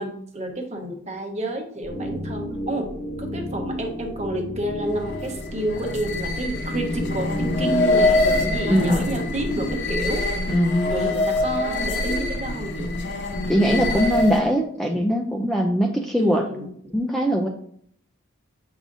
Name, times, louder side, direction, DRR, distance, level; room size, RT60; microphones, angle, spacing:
voice 1, 0.0-2.9 3.2-10.2 10.8-12.9 16.2-16.7, right 1 dB, 35° right, 3 dB, 1.0 m, -29 dB
sound 1, 1.8-9.7, equal, 30° left, 1.0 m, -33 dB
sound 2, 4.8-14.6, left 2 dB, 55° left, 0.8 m, -25 dB
voice 2, 8.7-9.0 10.5-10.8 13.5-16.5 16.9-17.5, equal, ahead, 1 dB, 0.4 m, -21 dB
7.4 x 4.9 x 2.6 m, 0.65 s
head